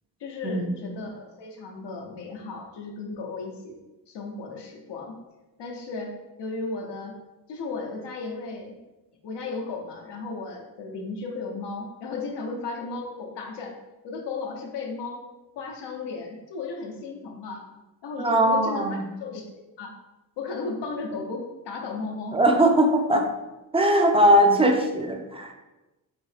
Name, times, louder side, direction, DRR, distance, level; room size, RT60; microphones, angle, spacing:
voice 1, 0.2-3.8 4.1-5.2 5.6-7.2 7.5-8.8 9.2-13.8 14.0-15.2 15.6-19.5 19.8-20.0 20.4-22.4, left 3 dB, 75° left, 1 dB, 0.8 m, -35 dB
voice 2, 18.2-19.0 22.3-23.2 23.7-25.5, right 1 dB, 15° right, 4 dB, 0.5 m, -20 dB
4.0 x 2.7 x 3.3 m, 1.1 s
cardioid pair, 65°, 42 cm